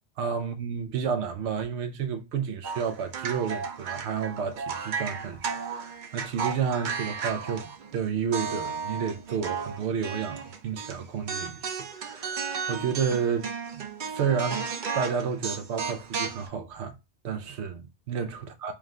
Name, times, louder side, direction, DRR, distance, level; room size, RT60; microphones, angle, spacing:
voice 1, 0.2-14.6 14.9-16.9 17.2-18.7, right 6 dB, 85° right, 0.9 m, -31 dB
sound 1, 2.6-8.0 8.3-11.0 11.3-16.5, right 5 dB, 55° right, 0.7 m, -34 dB
4.6 x 2.2 x 3.6 m
omnidirectional pair, 1.1 m